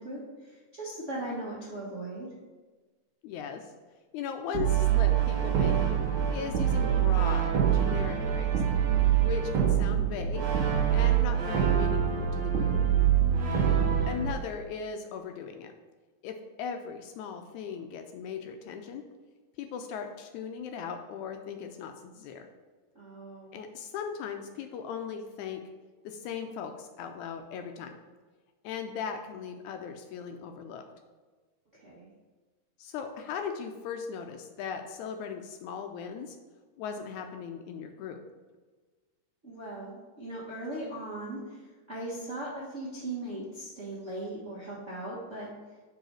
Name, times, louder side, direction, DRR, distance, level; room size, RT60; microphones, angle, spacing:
voice 1, 0.0-2.3 13.2-13.8 22.9-23.6 31.8-32.1 39.4-45.5, right 1 dB, 45° right, -8 dB, 0.9 m, -39 dB
voice 2, 3.2-3.7 4.1-5.8 6.3-8.5 9.2-10.4 10.9-12.7 14.1-15.7 16.2-19.0 19.6-22.5 23.5-25.6 26.0-27.9 28.6-30.8 32.8-36.4 36.8-38.2, left 7 dB, 80° left, 5 dB, 1.7 m, -38 dB
Brass instrument, 4.5-14.3, right 9 dB, 70° right, 1.2 m, -25 dB
5.3 x 4.8 x 6.3 m, 1.3 s
omnidirectional pair, 3.8 m